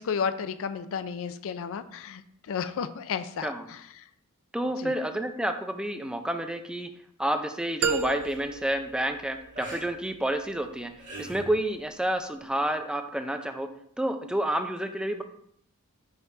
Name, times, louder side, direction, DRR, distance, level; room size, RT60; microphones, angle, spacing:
voice 1, 0.0-3.8 4.8-4.9, left 6 dB, 65° left, 12 dB, 0.4 m, -32 dB
voice 2, 4.5-6.9 7.2-10.9 11.2-13.7 14.0-15.2, right 1 dB, 5° right, 6 dB, 0.4 m, -29 dB
sound 1, 7.8-9.9, right 5 dB, 90° right, 0.5 m, -32 dB
sound 2, 8.2-8.3 9.5-9.9 10.7-11.5 12.7-12.8, right 2 dB, 35° right, 2.1 m, -41 dB
5.5 x 4.0 x 4.7 m, 0.70 s
head